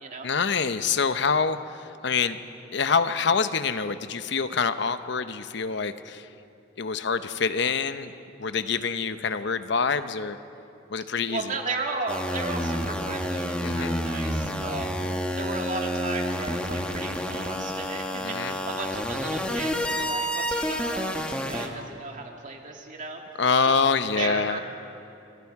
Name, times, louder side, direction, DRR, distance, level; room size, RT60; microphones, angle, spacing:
voice 1, 0.2-2.4 2.7-6.3 6.8-8.1 8.4-10.4 10.9-11.5 13.6-14.0 18.2-18.5 23.4-24.6, left 5 dB, 65° left, 11 dB, 0.8 m, -26 dB
voice 2, 11.3-23.2 23.6-23.8 24.1-24.6, right 3 dB, 45° right, 2 dB, 2.4 m, -35 dB
sound 1, 12.1-21.7, equal, 5° left, 1.7 m, -29 dB
29.5 x 24.0 x 4.8 m, 2.7 s
head